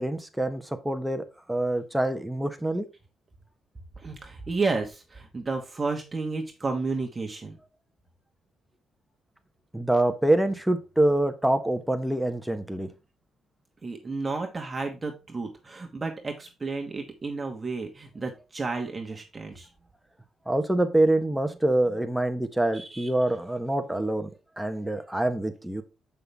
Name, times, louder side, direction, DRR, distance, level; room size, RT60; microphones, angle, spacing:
voice 1, 0.0-2.8 9.7-12.9 20.5-24.3 24.6-25.8, right 1 dB, 5° right, 1.1 m, -25 dB
voice 2, 4.0-7.6 13.8-19.7 21.9-22.0 22.7-23.1, right 3 dB, 25° right, 1.4 m, -32 dB
6.8 x 5.6 x 3.5 m
cardioid pair, 90°, 0 cm